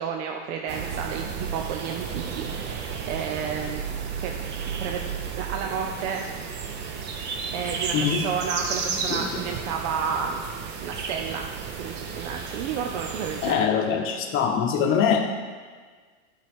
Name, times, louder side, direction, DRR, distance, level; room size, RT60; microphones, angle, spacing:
voice 1, 0.0-3.8 4.2-4.3 4.8-5.0 5.4-6.4 7.5-10.4 10.8-13.7, right 6 dB, 65° right, 3 dB, 0.7 m, -31 dB
sound 1, 0.7-13.5, right 6 dB, 30° right, 0.6 m, -33 dB
sound 2, 5.9-11.3, left 2 dB, 15° left, 1.1 m, -42 dB
voice 2, 7.9-8.2 13.4-15.3, left 7 dB, 35° left, 4 dB, 0.9 m, -23 dB
10.0 x 4.7 x 3.5 m, 1.5 s
supercardioid pair, 135°, 39 cm